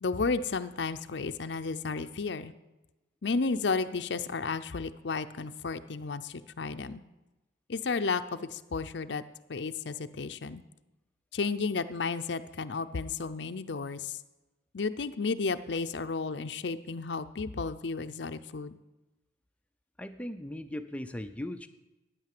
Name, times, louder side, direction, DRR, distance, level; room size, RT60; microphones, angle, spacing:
voice 1, 0.0-2.5 3.2-7.0 7.7-9.2 9.5-10.6 11.3-14.2 14.7-18.7, left 4 dB, 65° left, 10 dB, 0.6 m, -33 dB
voice 2, 20.0-21.7, left 1 dB, 5° left, 8 dB, 0.6 m, -38 dB
12.5 x 9.6 x 7.6 m, 1.0 s
head